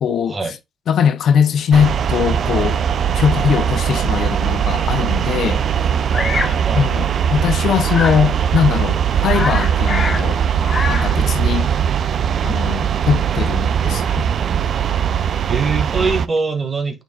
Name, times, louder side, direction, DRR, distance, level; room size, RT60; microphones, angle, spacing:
voice 1, 0.0-0.5 0.9-2.8 3.2-5.6 6.7-10.4 10.9-11.7 12.4-14.3, left 8 dB, 65° left, 0.6 m, -20 dB
sound 1, 1.7-16.3, right 8 dB, 60° right, 0.4 m, -19 dB
Bird vocalization bird call bird song, 6.1-6.6 7.9-8.3 8.8-8.9 9.1-10.3 10.5-11.2, left 4 dB, 35° left, 1.3 m, -25 dB
voice 2, 6.1-7.1 15.5-17.0, right 4 dB, 35° right, 1.9 m, -23 dB
8.9 x 4.5 x 2.4 m
cardioid pair, 90°, 0 cm